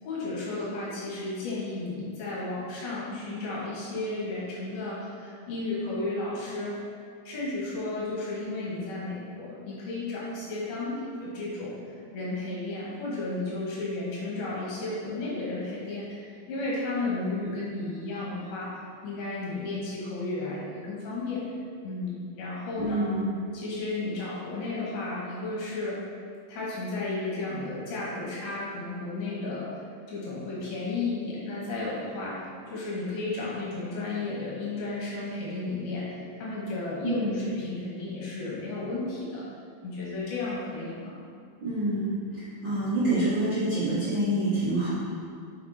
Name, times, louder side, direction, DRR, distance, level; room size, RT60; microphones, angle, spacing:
voice 1, 0.0-6.8 7.3-18.7 19.0-21.4 21.8-23.1 23.5-26.0 26.5-29.7 30.1-39.4 39.8-41.2, left 2 dB, 70° left, -7 dB, 3.5 m, -33 dB
voice 2, 22.8-23.3 37.0-37.5 41.6-42.2 42.6-44.9, right 1 dB, 35° right, -12 dB, 2.1 m, -26 dB
7.6 x 6.1 x 4.4 m, 2.2 s
omnidirectional pair, 4.6 m